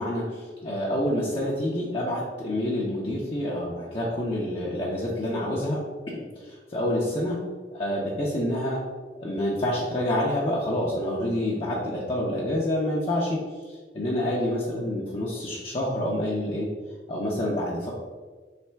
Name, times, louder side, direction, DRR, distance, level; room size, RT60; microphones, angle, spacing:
voice 1, 0.0-5.8 6.1-7.4 7.7-8.8 9.2-16.7 17.1-17.9, left 1 dB, 30° left, -5 dB, 0.6 m, -28 dB
3.3 x 3.3 x 4.5 m, 1.4 s
head